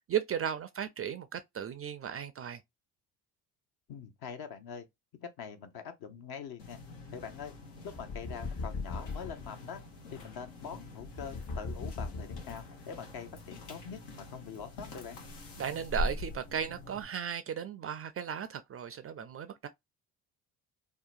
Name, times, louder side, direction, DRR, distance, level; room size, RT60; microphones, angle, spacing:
voice 1, 0.1-2.6 15.6-19.7, right 8 dB, 35° right, 0.4 m, -35 dB
voice 2, 3.9-4.9 5.1-6.8 7.1-7.5 7.8-9.8 10.1-15.2, left 7 dB, 55° left, 0.9 m, -44 dB
sound 1, 6.6-17.0, left 1 dB, 80° left, 1.1 m, -43 dB
sound 2, 7.9-9.5 11.0-12.8, left 3 dB, 30° left, 0.6 m, -39 dB
2.8 x 2.2 x 2.4 m
hypercardioid pair, 60°, 45 cm